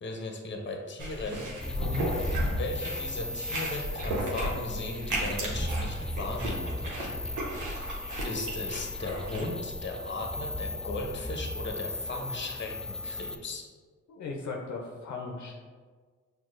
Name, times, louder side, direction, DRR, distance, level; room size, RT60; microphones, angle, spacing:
voice 1, 0.0-1.5 2.5-7.2 7.8-13.7, left 2 dB, 40° left, 2 dB, 0.8 m, -37 dB
sound 1, 1.0-9.4, right 1 dB, 80° right, 1.0 m, -35 dB
sound 2, 1.6-13.4, left 1 dB, 5° left, 0.3 m, -36 dB
voice 2, 1.8-2.1 14.1-15.6, left 4 dB, 70° left, 0 dB, 0.6 m, -37 dB
6.0 x 2.3 x 2.5 m, 1.5 s
supercardioid pair, 50°, 30 cm